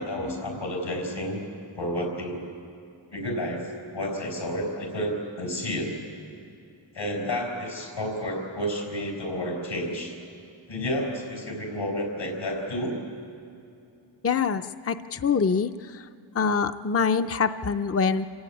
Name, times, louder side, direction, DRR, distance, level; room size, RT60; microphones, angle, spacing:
voice 1, 0.0-1.4 1.7-2.4 3.1-3.7 3.9-6.0 6.9-10.1 10.7-13.0, equal, 90° left, 1 dB, 5.1 m, -30 dB
voice 2, 14.2-16.1 16.3-18.3, left 5 dB, 35° left, 8 dB, 0.5 m, -25 dB
28.0 x 17.0 x 8.6 m, 2.6 s
wide cardioid pair, 85°, 44 cm